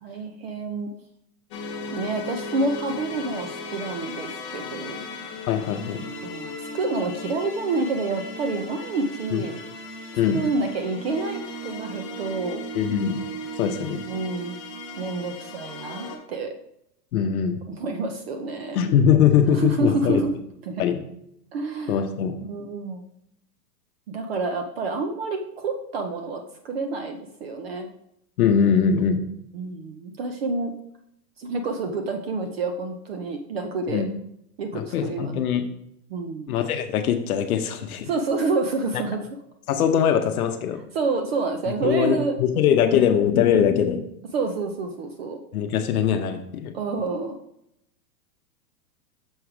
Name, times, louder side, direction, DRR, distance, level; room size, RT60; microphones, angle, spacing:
voice 1, 0.0-0.9 1.9-5.0 6.2-9.6 10.3-12.6 14.1-14.6 15.0-16.5 17.7-18.8 19.5-20.3 20.7-20.8 21.5-22.0 22.5-23.0 24.1-27.9 29.5-30.7 31.4-34.0 34.6-35.4 36.1-36.5 38.1-39.2 40.9-42.4 44.3-45.4 46.7-47.4, right 3 dB, 40° right, 6 dB, 0.6 m, -28 dB
sound 1, 1.5-16.2, left 1 dB, 20° left, 0.5 m, -36 dB
voice 2, 5.5-6.0 9.3-9.4 10.2-10.4 12.7-13.3 13.6-14.0 17.1-17.6 18.7-20.2 20.8-21.0 21.9-22.4 28.4-29.2 33.9-34.1 34.7-35.7 36.5-38.1 39.7-40.8 41.8-44.1 45.5-46.7, left 8 dB, 65° left, 6 dB, 0.8 m, -21 dB
6.3 x 4.7 x 4.8 m, 0.76 s
supercardioid pair, 175°, 47 cm